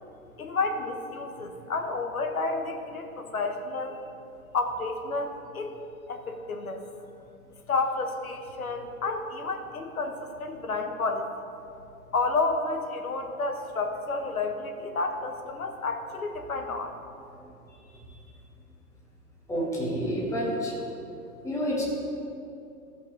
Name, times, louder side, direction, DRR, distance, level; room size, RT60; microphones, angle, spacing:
voice 1, 0.4-4.0 4.5-5.3 5.5-5.8 6.1-6.8 7.7-11.3 12.1-16.9, left 3 dB, 65° left, 5 dB, 1.3 m, -30 dB
voice 2, 19.5-20.7 21.4-21.8, equal, 5° left, -5 dB, 1.7 m, -28 dB
15.0 x 5.4 x 4.6 m, 2.7 s
figure-of-eight pair, 110°, 46 cm